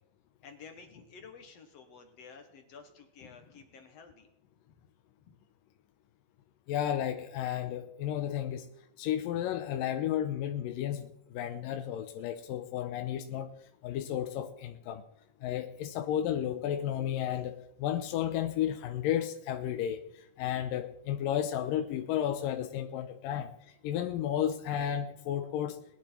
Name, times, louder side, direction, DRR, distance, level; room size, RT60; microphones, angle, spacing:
voice 1, 0.4-4.3 5.3-5.4 23.3-23.5, left 5 dB, 60° left, 6 dB, 1.8 m, -52 dB
voice 2, 6.7-8.7 9.0-13.5 13.8-15.0 15.4-23.5 23.8-25.8, left 10 dB, 75° left, 6 dB, 2.3 m, -33 dB
21.0 x 10.5 x 4.5 m, 0.77 s
omnidirectional pair, 4.3 m